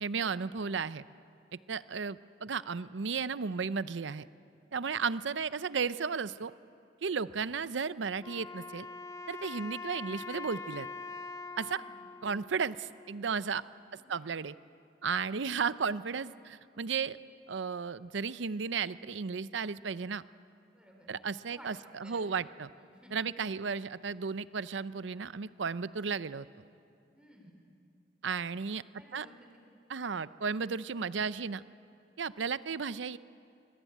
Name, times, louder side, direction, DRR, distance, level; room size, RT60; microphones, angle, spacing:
voice 1, 0.0-1.0 1.7-4.3 4.7-6.5 7.0-8.9 9.3-10.9 11.6-11.8 12.2-13.6 13.9-14.5 15.0-17.2 17.5-20.2 21.1-22.7 23.1-26.5 28.2-28.8 29.1-29.3 29.9-31.6 32.2-33.2, right 5 dB, 80° right, 16 dB, 0.6 m, -34 dB
Wind instrument woodwind instrument, 8.2-13.4, left 4 dB, 20° left, 0.7 m, -44 dB
voice 2, 11.7-12.1 13.9-14.3 20.7-21.1 21.5-22.3 22.7-23.1 27.1-27.6 29.0-29.5, equal, 5° right, 0 dB, 3.8 m, -57 dB
24.0 x 22.5 x 9.2 m, 2.5 s
head